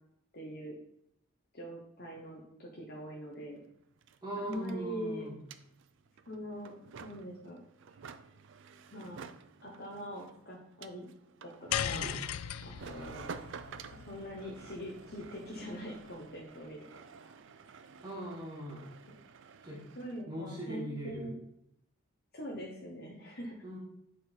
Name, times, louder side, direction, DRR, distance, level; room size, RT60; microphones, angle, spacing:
voice 1, 0.3-0.8 1.5-3.6 4.4-5.2 6.3-7.6 8.9-9.2 9.6-11.1 11.4-12.1 12.7-13.3 13.9-16.8 17.2-17.4 19.1-19.2 20.0-21.4 22.3-23.6, equal, 45° left, -3 dB, 1.0 m, -43 dB
sound 1, 3.3-3.4 3.6-20.2, right 5 dB, 55° right, 0.4 m, -51 dB
voice 2, 4.2-5.4 11.9-12.2 18.0-18.8 19.6-19.8 20.3-21.3 23.6-23.8, right 1 dB, 20° right, -4 dB, 1.8 m, -40 dB
sound 2, 11.7-16.1, left 9 dB, 85° left, 0.4 m, -39 dB
8.1 x 3.8 x 4.4 m, 0.78 s
head